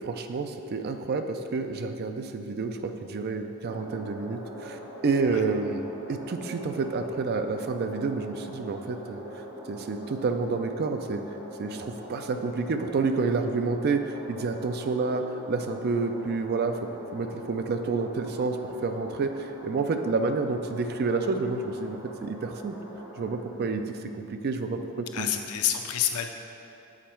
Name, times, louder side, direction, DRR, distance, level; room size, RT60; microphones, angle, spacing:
voice 1, 0.0-5.8 6.1-11.2 11.6-16.8 17.1-22.7 23.2-25.3, right 4 dB, 45° right, 7 dB, 0.4 m, -29 dB
sound 1, 3.7-23.4, right 1 dB, 20° right, 1.2 m, -43 dB
voice 2, 25.1-26.3, left 10 dB, 85° left, 5 dB, 0.5 m, -28 dB
7.3 x 4.2 x 4.4 m, 2.8 s
head